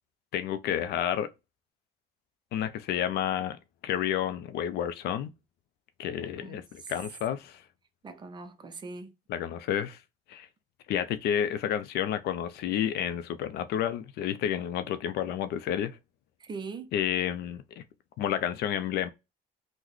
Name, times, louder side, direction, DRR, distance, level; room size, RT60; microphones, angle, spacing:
voice 1, 0.3-1.3 2.5-3.6 3.8-5.3 6.0-7.6 9.3-10.0 10.3-10.5 10.9-16.0 16.9-17.8 18.2-19.1, left 10 dB, 75° left, 0.4 m, -30 dB
voice 2, 6.2-6.9 8.0-9.1 16.4-16.9, right 4 dB, 25° right, 0.4 m, -42 dB
3.7 x 2.1 x 3.0 m
cardioid pair, 110°, 17 cm